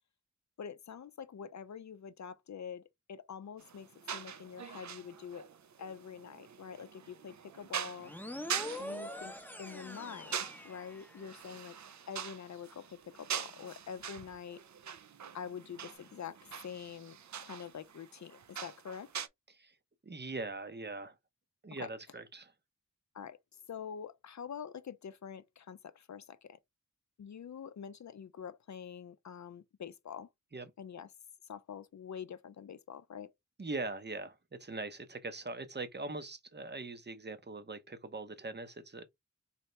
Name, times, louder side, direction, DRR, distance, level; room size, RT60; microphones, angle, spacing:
voice 1, 0.6-5.5 5.8-8.1 8.8-11.8 12.1-14.6 15.3-19.1 21.7-21.9 23.1-23.4 23.7-26.6 27.2-30.3 30.8-31.1 31.4-33.3, left 7 dB, 65° left, 0.5 m, -46 dB
sound 1, 3.6-19.3, right 8 dB, 65° right, 0.5 m, -44 dB
sound 2, 8.0-11.5, left 1 dB, 5° left, 0.7 m, -44 dB
voice 2, 20.0-21.2 21.6-22.5 30.5-30.7 33.6-39.0, right 3 dB, 35° right, 0.7 m, -41 dB
4.1 x 2.8 x 3.2 m
wide cardioid pair, 70°, 30 cm